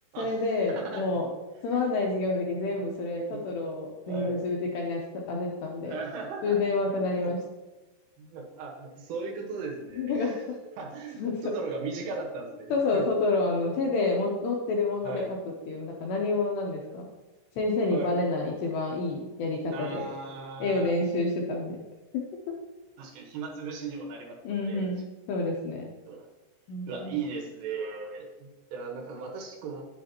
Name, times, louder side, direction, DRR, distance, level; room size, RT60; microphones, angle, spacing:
voice 1, 0.2-1.3 1.6-5.9 6.4-7.4 9.9-10.6 11.2-11.5 12.7-15.4 15.7-17.1 17.6-20.1 20.6-21.8 22.1-22.5 24.4-25.9 26.7-27.1, left 3 dB, 75° left, -1 dB, 2.6 m, -29 dB
voice 2, 0.8-1.1 1.7-1.8 2.3-2.4 3.3-3.6 4.1-4.4 5.9-6.6 7.1-7.3 8.2-10.4 10.8-12.7 12.9-13.0 15.0-15.3 16.9-17.0 17.9-18.1 19.7-20.9 23.0-24.9 26.1-26.3 26.9-29.8, right 4 dB, 80° right, 1 dB, 3.7 m, -37 dB
9.3 x 8.8 x 2.9 m, 1.1 s
omnidirectional pair, 5.8 m